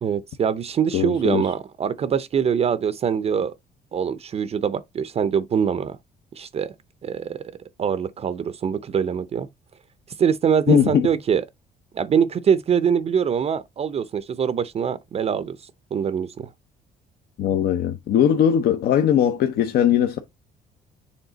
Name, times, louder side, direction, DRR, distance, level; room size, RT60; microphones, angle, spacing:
voice 1, 0.0-3.5 3.9-6.0 6.3-6.7 7.0-7.4 7.8-9.5 10.2-11.4 11.9-15.6 15.9-16.5, right 7 dB, 40° right, 0.5 m, -23 dB
voice 2, 0.9-1.5 10.7-11.1 17.4-20.2, left 9 dB, 65° left, 0.7 m, -20 dB
7.2 x 3.6 x 3.9 m
cardioid pair, 110°, 17 cm